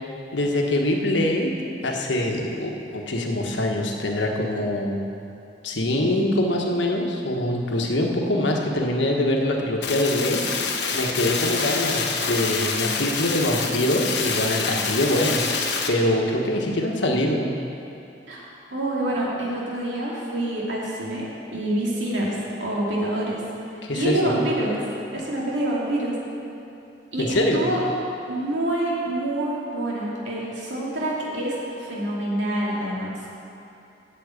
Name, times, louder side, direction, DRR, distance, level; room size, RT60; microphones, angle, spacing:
voice 1, 0.3-1.5 1.8-5.1 5.6-10.4 10.9-15.5 15.9-17.5 23.8-24.5 27.2-27.7, left 1 dB, 85° left, 1 dB, 1.3 m, -24 dB
sound 1, 9.8-15.9, left 5 dB, 65° left, 1.1 m, -26 dB
voice 2, 18.3-23.4 23.9-24.8 25.1-26.1 27.1-27.8 28.3-33.1, right 1 dB, 85° right, -5 dB, 2.5 m, -27 dB
8.8 x 7.6 x 8.3 m, 2.8 s
head